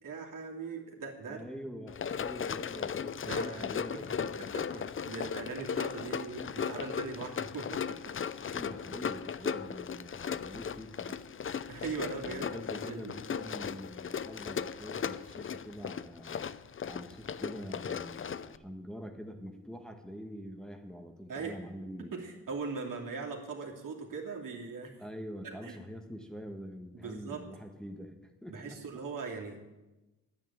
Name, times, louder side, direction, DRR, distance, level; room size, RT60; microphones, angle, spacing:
voice 1, 0.0-1.4 3.2-4.0 4.4-8.0 11.7-13.2 21.3-21.6 22.0-25.0 25.6-25.8 26.9-27.5 28.5-29.6, right 4 dB, 60° right, 0 dB, 3.1 m, -40 dB
voice 2, 1.3-4.8 8.4-11.2 12.2-16.4 16.8-22.1 25.0-28.8, equal, ahead, 3 dB, 1.5 m, -45 dB
Run, 1.9-18.6, left 7 dB, 35° left, 0.6 m, -37 dB
10.5 x 9.6 x 8.9 m, 1.1 s
cardioid pair, 80°, 36 cm